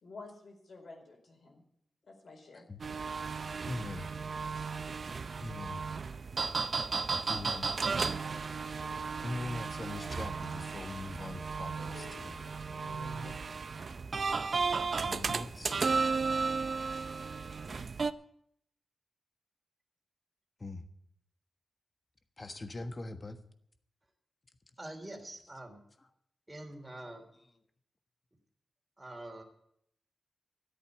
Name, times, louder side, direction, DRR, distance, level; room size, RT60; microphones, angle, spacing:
voice 1, 0.0-1.6 2.0-2.6, left 3 dB, 65° left, 1 dB, 4.7 m, -50 dB
sound 1, 2.8-18.1, right 4 dB, 50° right, 0.6 m, -34 dB
voice 2, 3.7-4.1 5.4-5.8 7.1-7.7 9.2-12.4 15.0-15.8 20.6-20.8 22.4-23.4 27.1-27.2, left 2 dB, 35° left, 8 dB, 1.4 m, -42 dB
sound 2, 8.2-13.3, left 3 dB, 85° left, 2.3 m, -54 dB
voice 3, 24.8-25.8 26.5-27.2 29.0-29.4, right 1 dB, 15° right, 3 dB, 3.0 m, -45 dB
13.5 x 8.5 x 8.2 m, 0.71 s
wide cardioid pair, 95°, 0 cm